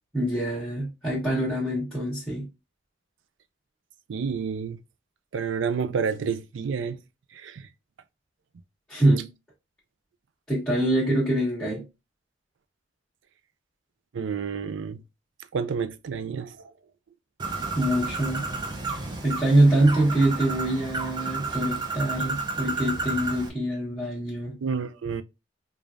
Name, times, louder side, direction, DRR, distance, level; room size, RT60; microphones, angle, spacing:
voice 1, 0.1-2.4 8.9-9.3 10.5-11.8 17.7-18.4 19.2-24.5, right 1 dB, 5° left, 1.3 m, -24 dB
voice 2, 4.1-4.8 5.3-7.0 7.3-7.7 14.1-15.0 15.5-16.6 24.6-25.2, right 6 dB, 70° right, 0.4 m, -29 dB
Bird, 17.4-23.5, right 3 dB, 20° right, 0.6 m, -32 dB
4.9 x 2.4 x 2.5 m
head